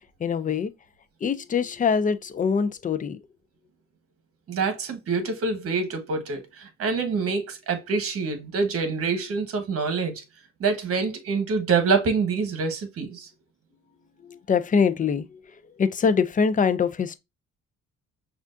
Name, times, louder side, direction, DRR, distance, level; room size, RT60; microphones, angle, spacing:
voice 1, 0.2-0.7 1.2-3.2 14.2-15.4 15.8-17.2, left 6 dB, 25° left, 0.4 m, -23 dB
voice 2, 4.5-10.2 10.6-13.3, right 4 dB, 50° right, 1.2 m, -26 dB
5.9 x 2.5 x 2.6 m
cardioid pair, 90°, 30 cm